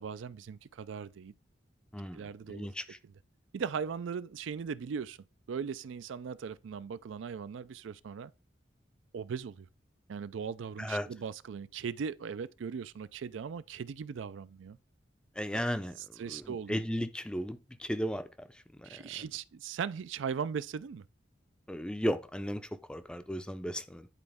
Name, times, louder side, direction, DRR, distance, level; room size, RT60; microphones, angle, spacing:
voice 1, 0.0-1.3 2.1-2.7 3.0-3.1 3.5-5.2 5.5-8.3 9.1-9.7 10.1-14.8 16.0-16.8 18.8-21.0, right 6 dB, 85° right, 0.4 m, -39 dB
voice 2, 2.5-2.8 10.8-11.1 15.4-15.9 16.3-16.4 16.7-18.2 21.7-24.1, equal, 5° left, 0.4 m, -34 dB
10.0 x 4.2 x 3.5 m
head